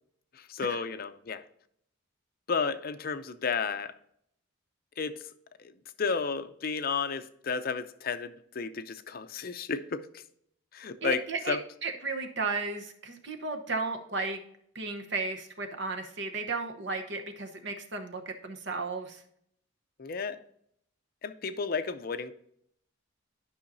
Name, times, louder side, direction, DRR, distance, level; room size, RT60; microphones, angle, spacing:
voice 1, 0.3-1.4 2.5-3.9 5.0-5.2 6.0-10.2 10.7-11.6 20.0-20.4 21.2-22.3, left 5 dB, 45° left, 0.5 m, -32 dB
voice 2, 11.0-11.6 11.8-14.4 14.7-19.2, right 3 dB, 60° right, 1.0 m, -34 dB
11.5 x 5.6 x 2.7 m
head